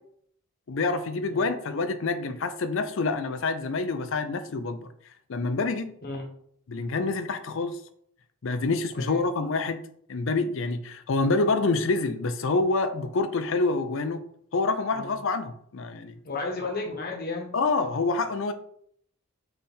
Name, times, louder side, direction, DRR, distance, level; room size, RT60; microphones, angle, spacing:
voice 1, 0.7-4.9 5.3-5.9 6.7-7.8 8.4-9.8 10.1-14.2 14.5-16.2 17.5-18.5, left 3 dB, 60° left, 10 dB, 0.5 m, -27 dB
voice 2, 16.2-17.5, left 3 dB, 45° left, 0 dB, 1.1 m, -33 dB
4.2 x 3.4 x 3.6 m, 0.66 s
head